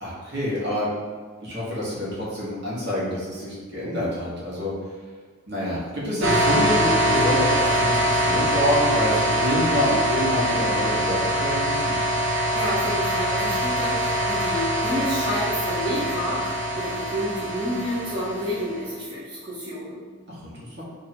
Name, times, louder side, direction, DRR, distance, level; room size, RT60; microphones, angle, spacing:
voice 1, 0.0-0.9 1.4-4.7 5.5-11.9 20.3-20.8, equal, 55° right, -7 dB, 1.2 m, -27 dB
sound 1, 6.2-18.8, equal, 75° right, 0.6 m, -23 dB
voice 2, 12.5-20.0, equal, 20° right, -10 dB, 0.6 m, -29 dB
2.8 x 2.6 x 4.2 m, 1.5 s
head